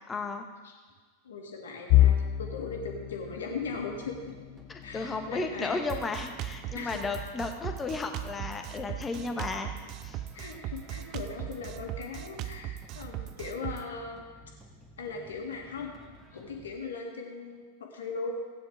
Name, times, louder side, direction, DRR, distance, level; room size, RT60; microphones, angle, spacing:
voice 1, 0.1-0.4 4.7-9.7 10.0-10.2, left 3 dB, 15° left, 5 dB, 1.3 m, -34 dB
voice 2, 1.2-4.3 4.8-5.8 6.5-7.0 10.3-14.2 15.0-15.9 16.3-18.3, left 4 dB, 65° left, 1 dB, 2.1 m, -39 dB
sound 1, 1.9-13.7 14.2-14.4 14.8-15.0 15.8-16.3, left 13 dB, 45° left, 0.5 m, -33 dB
sound 2, 3.6-16.7, equal, 5° right, 1.8 m, -54 dB
Drum kit, 5.9-13.8, right 13 dB, 40° right, 0.5 m, -39 dB
17.0 x 9.5 x 3.6 m, 1.4 s
figure-of-eight pair, 90°, 0 cm